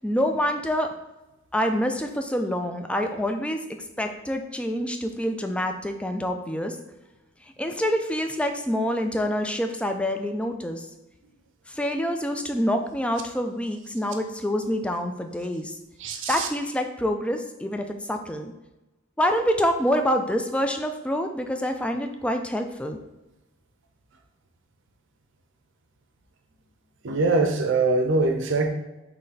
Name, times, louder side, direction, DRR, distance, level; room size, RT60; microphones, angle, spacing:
voice 1, 0.0-0.9 1.5-3.6 4.0-6.8 7.6-10.9 11.7-15.8 16.3-18.5 19.2-23.0, equal, 5° left, 5 dB, 0.3 m, -26 dB
voice 2, 16.0-16.5 27.0-28.7, right 3 dB, 65° right, 5 dB, 0.6 m, -23 dB
4.1 x 3.2 x 3.9 m, 1.0 s
head